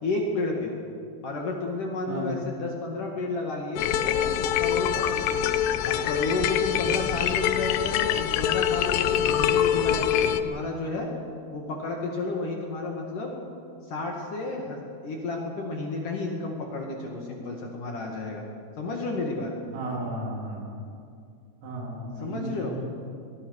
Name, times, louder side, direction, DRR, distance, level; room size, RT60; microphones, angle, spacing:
voice 1, 0.0-0.7 1.2-4.3 4.6-5.5 5.9-11.1 11.5-13.3 13.9-18.4 18.8-19.5 22.2-22.8, left 2 dB, 50° left, 0 dB, 2.9 m, -31 dB
sound 1, 3.8-10.4, left 10 dB, 75° left, 2.6 m, -24 dB
voice 2, 19.7-20.8 21.6-22.8, right 1 dB, 80° right, -1 dB, 6.4 m, -34 dB
23.0 x 21.5 x 6.5 m, 2.4 s
omnidirectional pair, 5.7 m